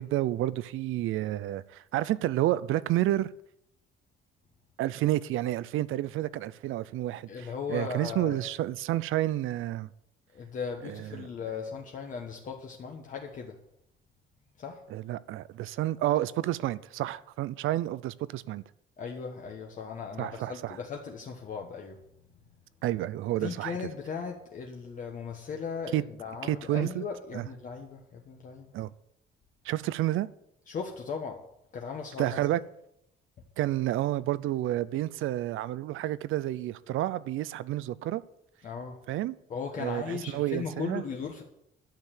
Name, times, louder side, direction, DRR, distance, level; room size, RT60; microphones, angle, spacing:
voice 1, 0.0-3.3 4.8-9.9 10.8-11.3 14.9-18.6 20.2-20.8 22.8-23.8 25.9-26.0 26.4-27.0 27.3-27.5 28.7-28.9 29.6-30.3 32.2-32.6 33.6-38.2 39.1-39.3 39.8-41.0, right 14 dB, 70° right, 0.6 m, -30 dB
voice 2, 7.3-8.4 10.3-13.6 14.6-14.8 19.0-22.0 23.4-28.7 30.7-31.4 31.7-32.5 38.6-39.0 39.5-41.4, left 6 dB, 40° left, 1.2 m, -37 dB
11.5 x 6.7 x 9.0 m
cardioid pair, 175°, 21 cm